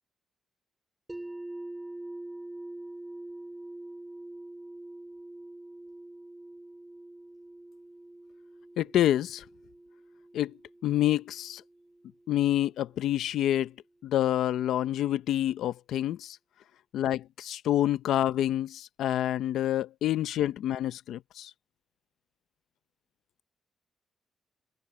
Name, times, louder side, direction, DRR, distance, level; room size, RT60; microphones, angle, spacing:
sound 1, 1.1-13.0, right 2 dB, 10° right, 5.2 m, -45 dB
voice 1, 8.8-9.4 10.3-10.6 10.8-11.6 12.3-13.7 14.0-16.4 16.9-21.5, left 12 dB, 90° left, 0.6 m, -27 dB
cardioid pair, 110°, 0 cm